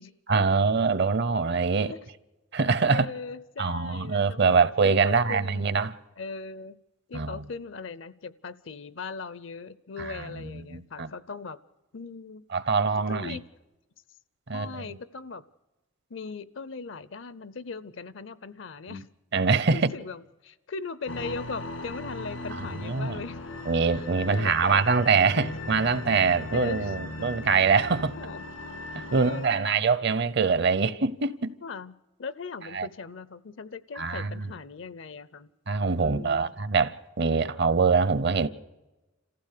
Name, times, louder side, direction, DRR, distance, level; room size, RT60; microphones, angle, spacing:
voice 1, 0.3-1.9 2.5-3.1 3.6-5.9 7.1-7.4 10.0-11.1 12.5-13.4 14.5-14.8 18.9-19.0 19.3-19.9 22.8-23.2 23.7-28.1 28.9-31.5 32.7-32.9 34.0-34.5 35.7-38.5, right 5 dB, 55° right, 0.7 m, -24 dB
voice 2, 2.9-5.8 6.2-6.8 7.1-11.6 11.9-12.4 13.1-13.5 14.5-15.4 16.1-19.1 19.7-23.4 24.3-25.8 26.5-26.9 28.2-28.4 29.2-29.7 31.6-31.9 32.2-35.5 36.0-36.5, left 4 dB, 65° left, 0.6 m, -39 dB
sound 1, 21.1-29.5, left 2 dB, 80° left, 1.9 m, -38 dB
27.0 x 15.0 x 6.6 m
head